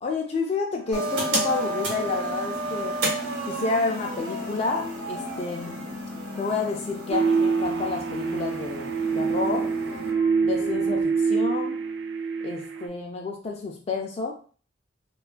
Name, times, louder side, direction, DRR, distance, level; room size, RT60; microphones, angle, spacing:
voice 1, 0.0-3.0 3.5-5.8 6.4-9.7 10.4-11.8 12.4-14.4, left 4 dB, 35° left, 1 dB, 0.3 m, -30 dB
sound 1, 0.7-11.0, left 1 dB, 75° left, 0.6 m, -42 dB
sound 2, 0.9-10.1, right 1 dB, 85° right, 0.9 m, -32 dB
sound 3, 7.1-12.9, right 5 dB, 70° right, 0.4 m, -25 dB
2.8 x 2.3 x 2.4 m, 0.40 s
head